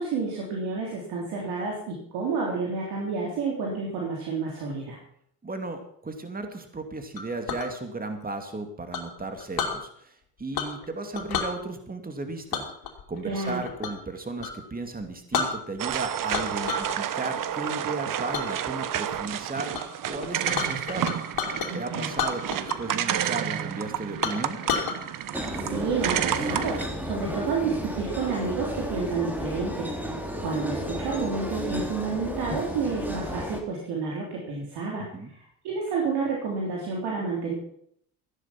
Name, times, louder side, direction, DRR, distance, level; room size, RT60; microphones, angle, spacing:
voice 1, 0.0-5.0 13.3-13.6 21.7-22.1 25.4-29.9 30.4-35.1 35.6-37.5, right 4 dB, 80° right, -2 dB, 3.6 m, -30 dB
voice 2, 5.4-12.7 13.1-19.7 20.0-21.1 21.7-24.6 35.1-35.3, right 3 dB, 20° right, 6 dB, 2.5 m, -35 dB
Chink clink, 7.2-7.7 8.9-9.8 10.5-10.9 11.1-11.5 12.5-14.0 14.4-14.6 15.0-15.1 15.3-16.0 16.3-16.9 17.3-17.7 18.3-18.5 19.0-19.3 19.7-19.8 20.1-21.7 22.1-22.9 23.2-23.3 23.8-23.9 24.2-25.0, left 6 dB, 65° left, 2.9 m, -30 dB
sound 1, 15.8-26.9, right 10 dB, 55° right, 1.1 m, -30 dB
sound 2, 25.3-33.6, equal, 5° right, 3.0 m, -33 dB
15.0 x 10.5 x 5.9 m, 0.66 s
supercardioid pair, 80°, 39 cm